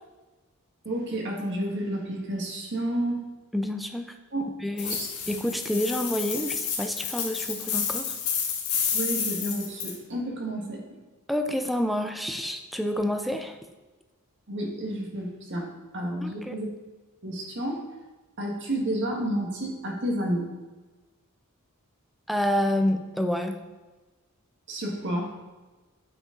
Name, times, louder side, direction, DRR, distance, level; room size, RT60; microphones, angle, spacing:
voice 1, 0.8-3.2 4.3-4.5 4.8-5.1 8.9-10.8 14.5-16.7 17.2-17.8 18.4-20.5 24.7-25.3, right 1 dB, 55° right, -1 dB, 1.6 m, -30 dB
voice 2, 3.5-4.1 4.6-5.0 5.3-8.2 11.3-13.6 16.2-16.6 22.3-23.6, left 1 dB, ahead, 6 dB, 0.5 m, -28 dB
sound 1, 4.8-9.9, left 7 dB, 90° left, 1.6 m, -30 dB
8.8 x 5.0 x 3.8 m, 1.2 s
head